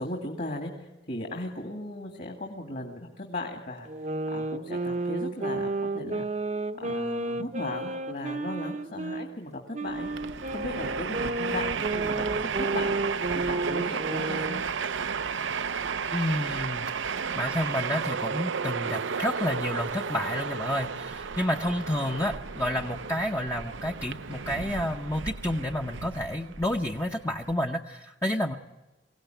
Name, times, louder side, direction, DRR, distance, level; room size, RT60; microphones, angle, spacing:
voice 1, 0.0-3.9 4.3-6.3 6.8-10.1 10.5-12.9 13.3-14.6, left 1 dB, 50° left, 2 dB, 2.2 m, -37 dB
sound 1, 3.9-9.3 9.7-14.6, right 2 dB, 40° right, 0.8 m, -32 dB
Train, 9.9-27.5, right 6 dB, 85° right, 0.7 m, -33 dB
voice 2, 16.1-28.5, left 1 dB, 15° left, 2 dB, 0.7 m, -30 dB
24.0 x 17.0 x 9.1 m, 1.1 s
head